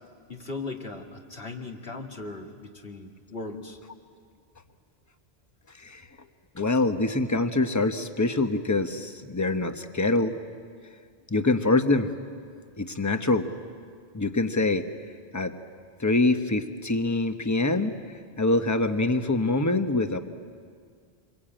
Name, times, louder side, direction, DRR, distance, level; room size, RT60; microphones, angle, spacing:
voice 1, 0.3-3.8, left 3 dB, 65° left, 1 dB, 2.4 m, -38 dB
voice 2, 5.7-6.1 6.5-10.4 11.3-12.1 12.8-13.5 14.1-14.9 15.3-15.6 16.0-20.2, left 2 dB, 15° left, 7 dB, 1.0 m, -25 dB
27.5 x 23.0 x 8.9 m, 2.1 s
omnidirectional pair, 1.1 m